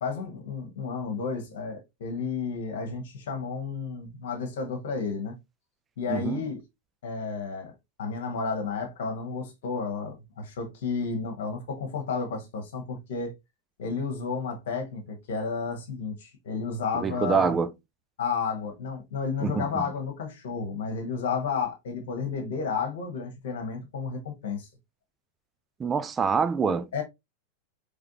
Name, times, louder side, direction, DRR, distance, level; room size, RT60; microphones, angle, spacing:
voice 1, 0.0-5.4 6.0-6.6 7.0-7.7 8.0-13.3 13.8-17.6 18.2-24.7 26.9-27.0, left 5 dB, 55° left, 1.3 m, -32 dB
voice 2, 6.1-6.4 16.9-17.7 19.4-19.8 25.8-26.9, right 6 dB, 20° right, 0.5 m, -26 dB
4.9 x 3.3 x 2.8 m
figure-of-eight pair, 90°, 0 cm